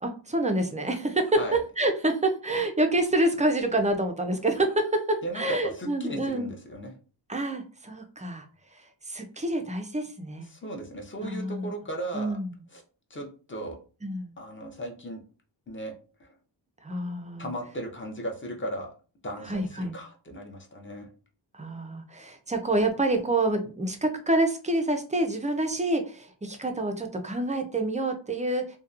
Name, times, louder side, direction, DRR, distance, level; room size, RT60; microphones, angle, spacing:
voice 1, 0.0-6.5 7.3-8.5 8.7-10.5 11.2-11.7 12.1-12.5 14.0-14.3 16.8-17.5 19.4-19.9 21.5-28.8, right 2 dB, 20° right, 5 dB, 0.3 m, -27 dB
voice 2, 5.2-6.9 10.5-12.4 12.7-12.8 13.1-13.8 14.4-15.2 15.7-15.9 16.2-16.3 17.4-18.9 19.2-21.1, right 1 dB, 25° left, 2 dB, 0.6 m, -36 dB
2.8 x 2.1 x 2.4 m, 0.36 s
wide cardioid pair, 100°, 45 cm